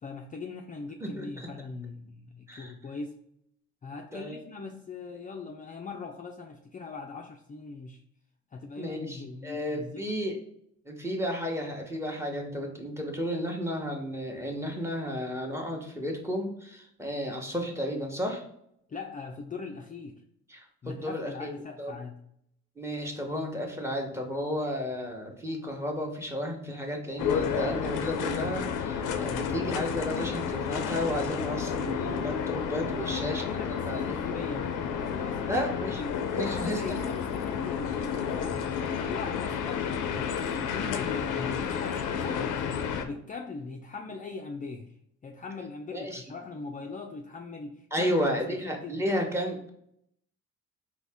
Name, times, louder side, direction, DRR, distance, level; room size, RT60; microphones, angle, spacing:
voice 1, 0.0-3.1 3.8-8.0 8.5-10.1 18.9-20.2 20.8-22.2 29.2-29.7 33.0-35.5 36.0-42.5 43.0-44.9 45.2-48.1 48.6-49.0, left 4 dB, 25° left, 2 dB, 0.4 m, -40 dB
voice 2, 1.0-1.5 2.5-2.7 4.1-4.4 8.8-10.4 10.8-18.4 20.5-21.9 22.8-34.3 35.5-36.0 36.3-37.0 45.9-46.2 47.9-49.7, equal, 10° right, 2 dB, 1.0 m, -33 dB
sound 1, 27.2-43.1, left 7 dB, 90° left, 0.5 m, -31 dB
4.1 x 2.9 x 3.4 m, 0.73 s
cardioid pair, 90°, 30 cm